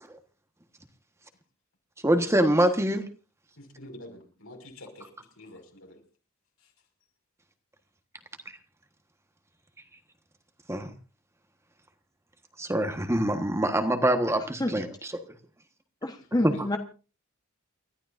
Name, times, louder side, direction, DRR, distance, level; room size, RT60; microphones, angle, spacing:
voice 1, 2.0-3.0 10.7-10.9 12.6-15.1 16.4-16.5, right 1 dB, 15° right, 7 dB, 1.3 m, -24 dB
voice 2, 3.6-5.1 5.4-6.0 6.6-6.7 16.2-16.6, left 1 dB, 80° left, 2 dB, 5.9 m, -47 dB
voice 3, 16.0-16.8, left 1 dB, 20° left, 5 dB, 1.2 m, -28 dB
29.5 x 13.0 x 2.6 m, 0.34 s
head